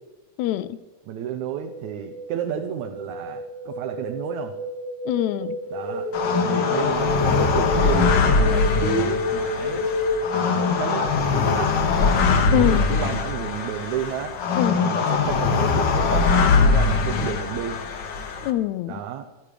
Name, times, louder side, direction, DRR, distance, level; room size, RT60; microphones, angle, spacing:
voice 1, 0.4-0.8 5.1-5.6 8.5-8.6 12.5-13.0 14.6-14.8 18.4-19.0, left 13 dB, 80° left, 15 dB, 1.8 m, -24 dB
voice 2, 1.1-4.6 5.7-6.1 6.5-9.9 10.3-11.8 12.5-14.4 14.8-17.8 18.9-19.3, right 9 dB, 75° right, 5 dB, 2.1 m, -31 dB
sound 1, 1.3-11.2, left 3 dB, 30° right, 1.5 m, -29 dB
sound 2, 6.1-18.5, left 4 dB, 60° left, 1.1 m, -22 dB
14.0 x 13.5 x 5.0 m, 1.2 s
omnidirectional pair, 3.6 m